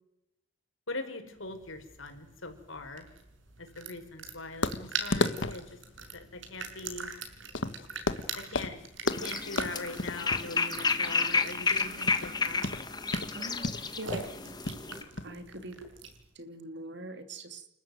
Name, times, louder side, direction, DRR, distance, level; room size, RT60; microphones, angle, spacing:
voice 1, 0.9-3.1 3.6-5.8 6.1-7.1 8.4-12.7, left 2 dB, 85° left, 6 dB, 5.3 m, -41 dB
sound 1, 1.5-16.3, right 4 dB, 75° right, 5.8 m, -43 dB
sound 2, 4.6-15.3, left 2 dB, 70° left, 1.6 m, -35 dB
sound 3, 9.1-15.0, left 4 dB, 20° left, 1.9 m, -31 dB
voice 2, 13.3-14.3 15.2-15.8 16.3-17.7, right 2 dB, 60° right, 9 dB, 3.1 m, -42 dB
30.0 x 14.0 x 9.3 m, 0.85 s
head